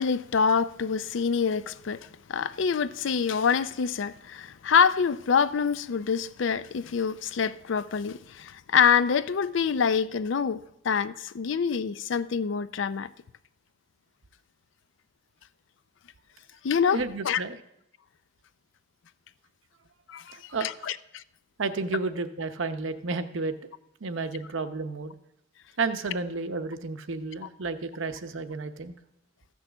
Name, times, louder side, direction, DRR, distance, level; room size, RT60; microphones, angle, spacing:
voice 1, 0.0-2.0 2.3-13.1 16.6-17.0 17.3-17.4 20.1-21.2, left 6 dB, 65° left, 0.4 m, -26 dB
voice 2, 16.9-17.6 20.3-20.9 21.6-23.5 24.0-25.2 25.8-28.9, right 3 dB, 75° right, 0.8 m, -32 dB
14.0 x 6.3 x 6.9 m
head